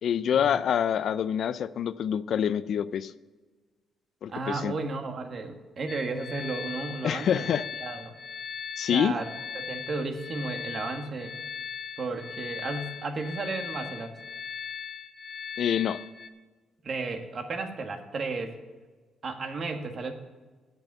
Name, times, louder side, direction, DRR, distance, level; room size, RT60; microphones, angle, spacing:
voice 1, 0.0-3.1 4.2-4.7 7.0-7.6 8.8-9.1 15.6-16.0, left 9 dB, 65° left, 14 dB, 0.4 m, -26 dB
voice 2, 4.3-7.5 7.8-8.2 8.9-9.3 9.5-11.3 12.0-14.1 16.8-18.6 19.2-20.1, right 3 dB, 45° right, 5 dB, 1.6 m, -33 dB
sound 1, 5.9-16.3, left 7 dB, 50° left, 0.9 m, -39 dB
8.9 x 8.0 x 7.1 m, 1.3 s
cardioid pair, 90°, 0 cm